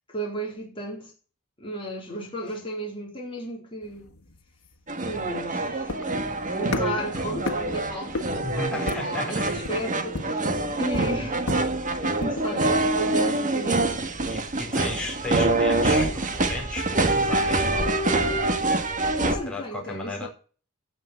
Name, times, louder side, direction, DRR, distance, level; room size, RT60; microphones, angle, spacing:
voice 1, 0.1-1.1 1.6-4.1 5.0-5.9 6.4-8.7 9.0-11.4 12.0-14.1 19.3-20.3, equal, 25° left, 4.0 m, -34 dB
sound 1, 3.8-12.5, left 2 dB, 80° left, 1.7 m, -36 dB
sound 2, 4.9-19.4, right 2 dB, 35° right, 1.7 m, -25 dB
voice 2, 8.3-9.6 14.3-18.2 19.4-20.3, left 2 dB, 5° left, 4.8 m, -34 dB
16.0 x 5.5 x 7.7 m
head